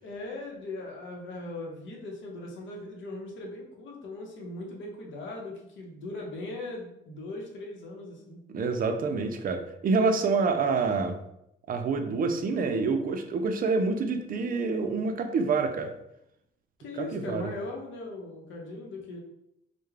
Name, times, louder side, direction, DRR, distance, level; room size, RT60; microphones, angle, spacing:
voice 1, 0.0-8.4 16.8-19.2, left 2 dB, 70° left, 0 dB, 0.7 m, -39 dB
voice 2, 8.5-11.2 11.7-15.9 17.0-17.5, right 4 dB, 45° right, 6 dB, 0.4 m, -27 dB
2.3 x 2.1 x 3.1 m, 0.81 s
cardioid pair, 90°, 20 cm